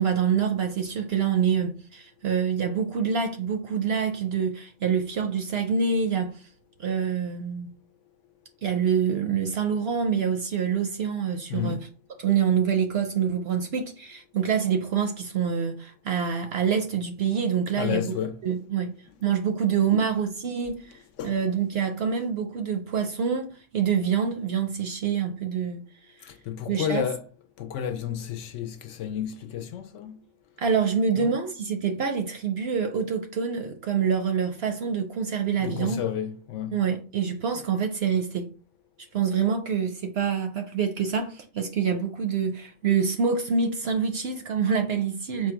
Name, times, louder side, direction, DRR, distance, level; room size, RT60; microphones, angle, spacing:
voice 1, 0.0-6.3 6.8-7.7 8.6-11.8 12.2-18.1 18.4-18.9 19.2-20.8 21.2-25.8 26.7-27.1 30.6-36.0 36.7-38.5 39.1-45.5, right 7 dB, 60° right, 0.7 m, -26 dB
voice 2, 17.7-18.4 19.9-20.1 21.2-21.4 21.7-21.9 26.2-27.3 27.6-30.2 31.2-31.3 35.6-36.8, left 9 dB, 70° left, 0.8 m, -31 dB
4.5 x 2.2 x 4.5 m
omnidirectional pair, 1.4 m